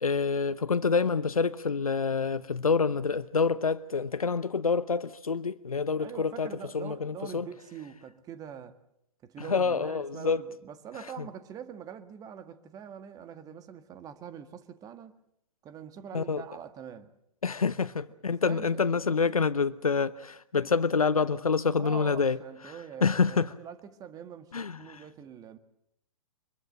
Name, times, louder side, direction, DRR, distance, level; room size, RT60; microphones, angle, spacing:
voice 1, 0.0-7.5 9.5-10.4 16.1-16.4 17.4-22.4 23.0-23.5 24.5-25.0, left 5 dB, 85° left, 0.9 m, -27 dB
voice 2, 6.0-8.8 9.2-15.2 15.6-17.1 18.4-18.8 21.8-25.6, right 8 dB, 20° right, 1.8 m, -44 dB
25.0 x 22.0 x 7.8 m
figure-of-eight pair, 125°, 18 cm